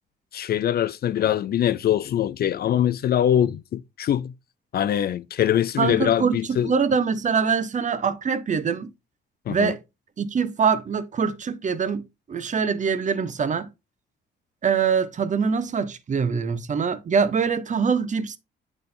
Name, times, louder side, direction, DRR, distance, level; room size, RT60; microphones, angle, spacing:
voice 1, 0.3-4.3 4.7-6.7 9.5-9.7, left 10 dB, 50° left, 0.4 m, -23 dB
voice 2, 5.8-8.9 9.5-9.8 10.2-13.7 14.6-18.4, right 6 dB, 40° right, 0.8 m, -24 dB
8.7 x 3.7 x 3.8 m
cardioid pair, 90°, 20 cm